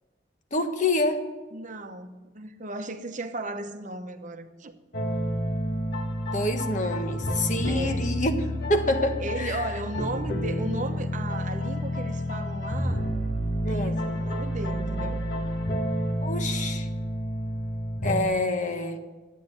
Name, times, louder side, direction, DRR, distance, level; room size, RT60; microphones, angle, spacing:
voice 1, 0.5-1.2 6.3-9.6 13.6-13.9 16.2-16.9 18.0-19.0, left 1 dB, 45° left, 1.3 m, -27 dB
voice 2, 1.5-4.8 7.7-8.1 9.2-13.1 13.7-15.2, right 2 dB, 45° right, 0.9 m, -35 dB
sound 1, 4.9-18.2, equal, 65° left, 1.5 m, -29 dB
12.0 x 9.1 x 8.5 m
head